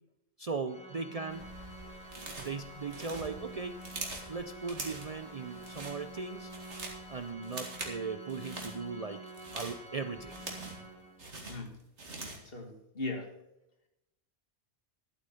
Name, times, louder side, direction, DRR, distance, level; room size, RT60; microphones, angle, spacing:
voice 1, 0.4-1.5 2.4-3.8 4.3-6.5 7.1-9.2 9.5-10.4, right 4 dB, 40° right, 9 dB, 0.6 m, -38 dB
Organ, 0.7-11.5, right 1 dB, 5° left, 1.7 m, -48 dB
sound 1, 1.3-7.3, right 1 dB, 70° right, 2.9 m, -55 dB
sound 2, 2.1-2.6 2.9-4.3 4.7-5.2 5.5-6.0 6.3-7.0 7.4-8.0 8.3-8.8 9.3-10.9 11.2-12.5, right 2 dB, 85° right, 2.3 m, -43 dB
voice 2, 11.5-11.8 12.4-13.3, left 2 dB, 55° left, 4 dB, 2.0 m, -38 dB
12.0 x 8.4 x 5.6 m, 0.86 s
omnidirectional pair, 1.1 m